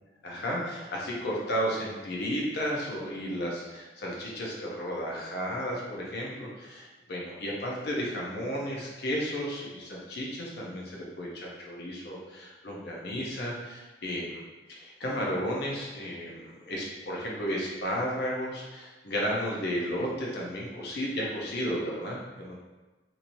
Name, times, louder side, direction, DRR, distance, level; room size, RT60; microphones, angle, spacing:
voice 1, 0.2-14.4 14.7-22.6, equal, 65° left, -3 dB, 0.7 m, -33 dB
3.0 x 2.7 x 2.7 m, 1.1 s
head